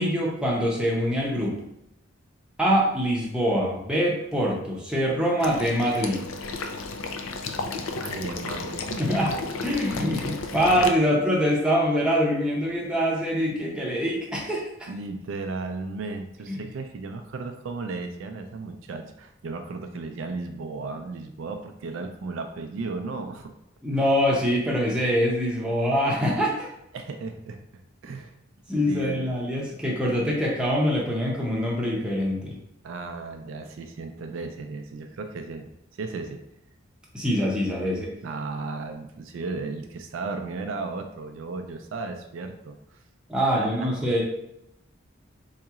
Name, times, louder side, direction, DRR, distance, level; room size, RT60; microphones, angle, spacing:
voice 1, 0.0-1.6 2.6-6.2 9.0-9.3 9.6-14.9 16.5-16.6 23.8-26.7 28.7-32.6 37.1-38.1 43.3-44.2, equal, 5° right, -4 dB, 0.6 m, -24 dB
Water / Liquid, 5.4-10.9, left 3 dB, 85° left, 0.4 m, -33 dB
voice 2, 8.0-9.0 14.9-23.5 23.9-24.1 26.9-28.3 28.9-29.2 29.6-29.7 32.8-35.7 36.0-36.4 38.2-43.0 43.4-44.1, right 3 dB, 75° right, 5 dB, 0.4 m, -35 dB
3.9 x 2.8 x 2.3 m, 0.82 s
head